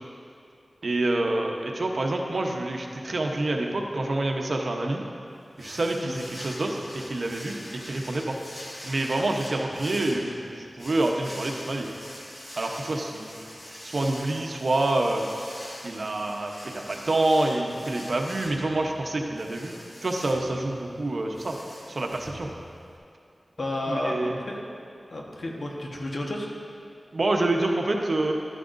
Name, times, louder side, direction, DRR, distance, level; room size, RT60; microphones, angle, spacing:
voice 1, 0.8-5.0 5.6-8.4 8.8-11.9 12.6-13.4 13.8-15.2 15.8-19.8 20.0-21.5 21.9-22.5 23.9-24.4 27.1-28.4, right 2 dB, 65° right, 2 dB, 0.9 m, -27 dB
sound 1, 5.6-23.0, equal, 45° left, 1.8 m, -44 dB
voice 2, 23.6-24.6 25.1-26.5, left 1 dB, 70° left, -1 dB, 1.2 m, -31 dB
12.0 x 9.9 x 2.6 m, 2.5 s
wide cardioid pair, 70°, 0 cm